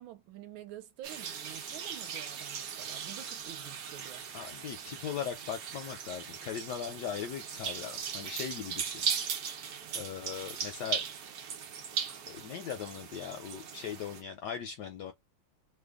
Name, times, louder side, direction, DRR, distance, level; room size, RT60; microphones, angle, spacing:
voice 1, 0.0-4.3, right 13 dB, 80° right, 1.4 m, -48 dB
sound 1, 1.0-14.2, right 7 dB, 65° right, 0.9 m, -38 dB
voice 2, 4.3-9.0 9.9-11.0 12.3-15.1, left 8 dB, 75° left, 0.9 m, -39 dB
3.3 x 2.2 x 3.4 m
omnidirectional pair, 2.2 m